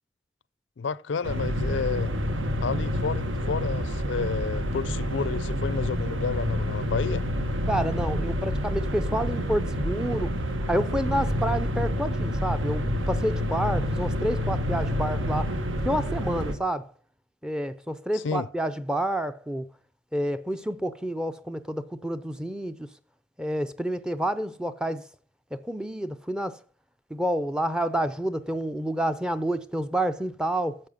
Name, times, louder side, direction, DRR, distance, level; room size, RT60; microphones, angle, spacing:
voice 1, 0.8-2.1 2.6-7.2 18.1-18.5, left 5 dB, 65° left, 0.4 m, -31 dB
sound 1, 1.2-16.6, equal, 80° right, 1.3 m, -28 dB
voice 2, 7.7-10.3 10.7-15.5 15.8-16.9 17.4-19.7 20.1-22.9 23.4-25.0 25.5-26.6 27.1-30.8, right 1 dB, 5° right, 0.5 m, -29 dB
10.5 x 7.4 x 5.2 m
head